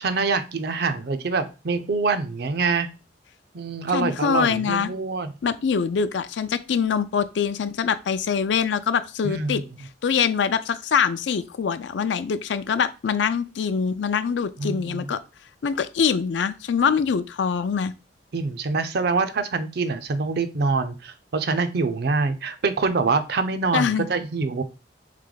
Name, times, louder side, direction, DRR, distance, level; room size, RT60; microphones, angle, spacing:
voice 1, 0.0-2.9 3.5-5.3 9.2-9.6 14.6-15.1 18.3-24.6, right 4 dB, 60° right, 0.5 m, -25 dB
voice 2, 3.9-4.9 5.4-9.6 10.0-15.2 15.6-17.9 23.7-24.1, left 6 dB, 75° left, 0.4 m, -24 dB
3.4 x 3.3 x 3.8 m
head